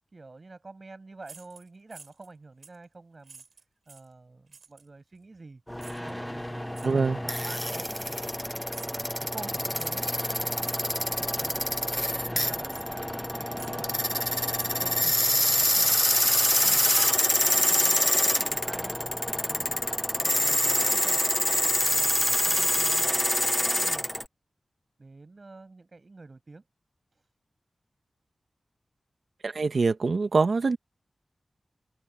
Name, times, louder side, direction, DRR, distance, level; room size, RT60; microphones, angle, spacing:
voice 1, 0.1-3.4 3.9-5.6 6.0-8.4 9.0-10.1 10.3-10.6 11.3-14.4 14.7-16.0 16.5-17.0 17.3-19.9 20.2-21.2 21.9-24.1 25.0-26.6 27.1-27.2, right 3 dB, 45° right, 7.5 m, -47 dB
sound 1, 1.2-2.3 2.6-2.8 3.2-4.1 4.5-4.9 5.8-6.1 6.7-6.9 7.6-8.4 8.7-9.0 9.7-10.1 10.6-10.8 11.4-11.7 12.1-12.2 12.7-12.9 13.5-13.9 14.2-14.9 15.4-15.5 16.0-16.6 16.8-18.4, right 5 dB, 80° right, 6.6 m, -52 dB
sound 2, 5.7-24.2, equal, 5° left, 0.8 m, -26 dB
voice 2, 6.8-7.2 29.4-30.8, right 4 dB, 65° right, 1.5 m, -24 dB
wide cardioid pair, 95°, 0 cm